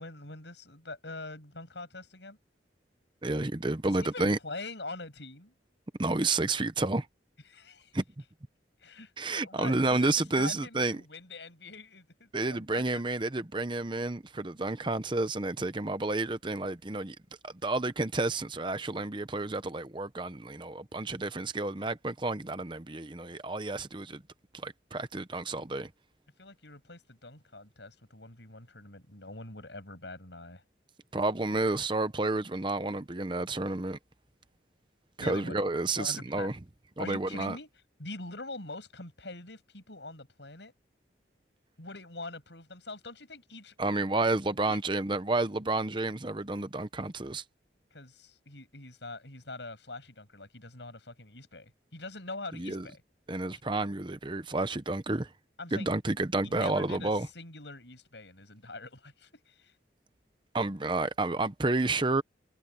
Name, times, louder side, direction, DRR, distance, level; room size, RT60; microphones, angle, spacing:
voice 1, 0.0-2.4 3.9-5.6 7.5-8.0 8.8-13.0 26.4-30.6 35.2-35.6 36.0-36.5 37.0-37.7 38.0-40.7 41.8-44.1 44.7-44.8 47.9-53.0 55.6-55.9 56.4-59.7, left 2 dB, 75° left, 7.2 m, -44 dB
voice 2, 3.2-4.4 6.0-7.1 7.9-8.0 9.2-11.0 12.3-17.2 17.4-24.2 24.5-25.9 31.1-34.0 35.2-36.6 37.0-37.6 43.8-47.4 52.6-52.9 53.3-55.3 55.7-57.3 60.5-62.2, right 2 dB, 25° right, 0.8 m, -30 dB
head